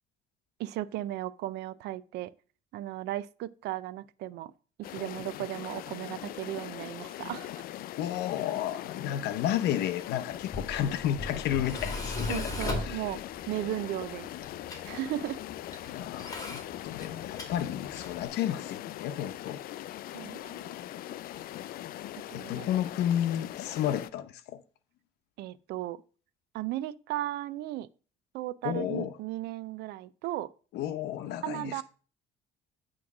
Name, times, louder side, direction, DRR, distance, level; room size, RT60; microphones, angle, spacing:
voice 1, 0.6-2.3 2.7-4.5 4.9-7.6 12.3-13.2 13.5-14.3 14.8-15.4 20.1-20.7 22.3-22.7 25.4-26.0 26.5-27.9 28.3-30.5 31.4-31.8, right 14 dB, 80° right, 0.5 m, -36 dB
sound 1, 4.8-24.1, left 13 dB, 60° left, 0.4 m, -41 dB
voice 2, 8.0-12.5 12.8-13.0 15.9-19.6 22.3-24.6 28.6-29.2 30.7-31.8, left 11 dB, 80° left, 0.8 m, -32 dB
Tools, 10.3-18.3, left 2 dB, 20° left, 2.2 m, -39 dB
9.4 x 3.2 x 6.0 m
cardioid pair, 110°, 17 cm